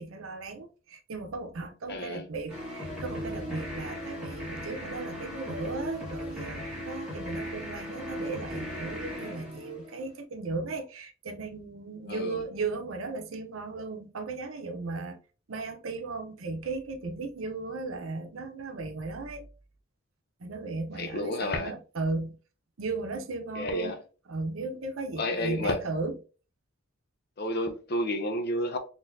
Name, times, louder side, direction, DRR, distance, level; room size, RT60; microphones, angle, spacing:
voice 1, 0.0-15.2 15.5-19.5 20.4-22.4 22.8-24.0 24.3-26.2, right 3 dB, 75° right, 0.7 m, -36 dB
voice 2, 1.9-2.3 12.1-12.4 21.0-21.7 23.6-24.0 25.2-25.8 27.4-28.8, left 1 dB, 50° left, 0.6 m, -30 dB
sound 1, 2.5-10.2, equal, ahead, 1.6 m, -37 dB
3.8 x 3.0 x 2.6 m
head